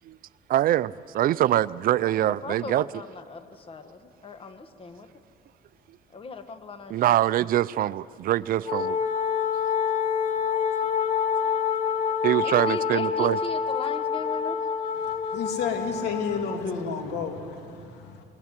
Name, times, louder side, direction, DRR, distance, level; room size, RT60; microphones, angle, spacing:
voice 1, 0.5-2.9 6.9-9.0 10.4-10.5 10.8-11.0 12.2-13.4, right 13 dB, 60° right, 0.5 m, -24 dB
voice 2, 2.4-5.1 6.1-6.9 12.4-14.6, left 3 dB, 30° left, 1.4 m, -38 dB
Wind instrument woodwind instrument, 8.6-16.7, left 7 dB, 50° left, 1.9 m, -27 dB
voice 3, 15.0-18.2, left 5 dB, 85° left, 2.8 m, -31 dB
22.0 x 18.5 x 9.5 m
cardioid pair, 110°, 17 cm